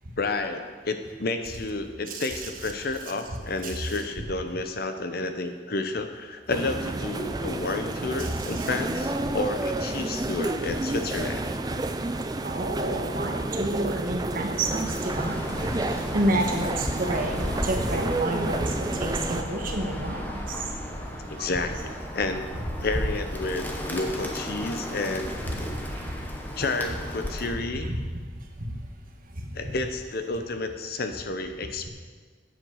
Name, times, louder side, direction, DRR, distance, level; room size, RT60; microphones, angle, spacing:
voice 1, 0.2-11.4 21.3-25.6 26.6-27.9 29.5-31.9, left 3 dB, 55° left, 7 dB, 0.8 m, -31 dB
sound 1, 6.5-19.4, right 2 dB, 20° right, 0.4 m, -30 dB
voice 2, 8.2-8.7 12.4-20.6 21.2-21.5 25.9-26.1 27.8-28.2 28.6-28.8 29.4-29.5, right 1 dB, 50° right, 2 dB, 1.4 m, -30 dB
Bird, 14.5-27.6, equal, 10° left, 1.0 m, -34 dB
9.0 x 7.6 x 6.4 m, 1.5 s
head